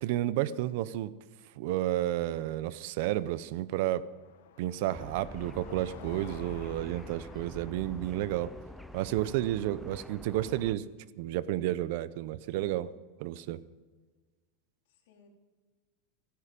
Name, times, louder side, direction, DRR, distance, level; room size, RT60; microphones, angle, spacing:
voice 1, 0.0-1.1 1.6-4.1 4.6-8.5 8.9-10.9 11.2-12.9 13.2-13.6, right 14 dB, 50° right, 17 dB, 0.5 m, -31 dB
Car passing by, 2.2-10.4, left 8 dB, 90° left, 1.4 m, -54 dB
sound 1, 4.9-10.7, left 1 dB, ahead, 0.4 m, -46 dB
voice 2, 9.6-10.1 14.9-15.3, left 5 dB, 65° left, 1 dB, 3.4 m, -62 dB
15.0 x 14.0 x 5.3 m, 1.4 s
supercardioid pair, 175°, 0 cm